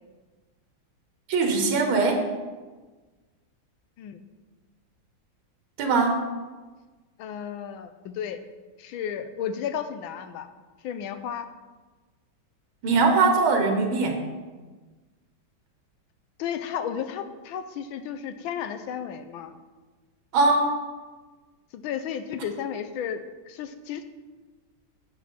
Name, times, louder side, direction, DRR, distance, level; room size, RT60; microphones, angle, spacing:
voice 1, 1.3-2.2 5.8-6.2 12.8-14.2 20.3-20.7, right 3 dB, 80° right, 3 dB, 2.1 m, -21 dB
voice 2, 7.2-8.4 8.8-10.5 10.8-11.5 16.4-19.5 21.7-24.0, left 8 dB, 85° left, 10 dB, 1.4 m, -33 dB
10.0 x 7.2 x 4.4 m, 1.3 s
omnidirectional pair, 2.2 m